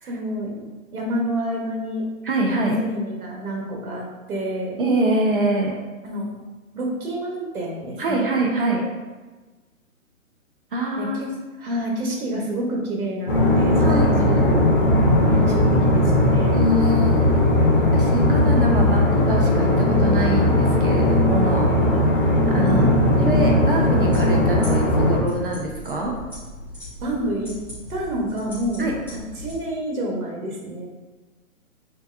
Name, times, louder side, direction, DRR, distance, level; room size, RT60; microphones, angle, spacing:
voice 1, 0.1-2.0 2.6-4.8 6.0-6.3 6.7-8.3 11.0-11.3 11.6-14.7 15.2-16.6 22.6-22.9 27.0-27.5 27.9-30.9, right 1 dB, 80° right, -1 dB, 1.3 m, -28 dB
voice 2, 2.2-2.8 4.8-5.7 8.0-8.8 10.7-11.3 13.8-14.4 16.5-17.4 17.9-22.0 22.5-22.8 23.2-26.2 28.8-28.9, right 1 dB, 40° right, 0 dB, 0.5 m, -24 dB
sound 1, 13.3-25.2, left 1 dB, 40° left, 1.1 m, -18 dB
sound 2, 24.1-29.6, left 1 dB, 5° left, 1.2 m, -37 dB
4.5 x 2.8 x 2.6 m, 1.3 s
hypercardioid pair, 160°, 43 cm